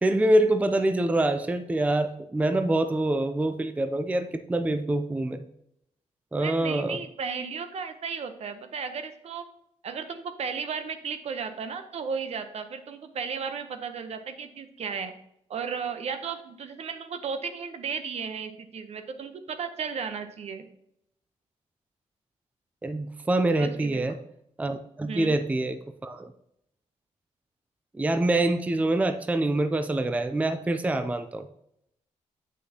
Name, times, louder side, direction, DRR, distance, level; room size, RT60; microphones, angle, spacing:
voice 1, 0.0-5.4 6.3-7.0 22.8-24.2 24.6-26.3 27.9-31.5, right 1 dB, 10° right, 9 dB, 0.4 m, -25 dB
voice 2, 6.4-9.4 9.8-15.1 15.5-20.6 23.6-24.0 25.1-25.4, right 6 dB, 60° right, 8 dB, 0.8 m, -34 dB
7.9 x 6.1 x 2.8 m, 0.77 s
cardioid pair, 105°, 12 cm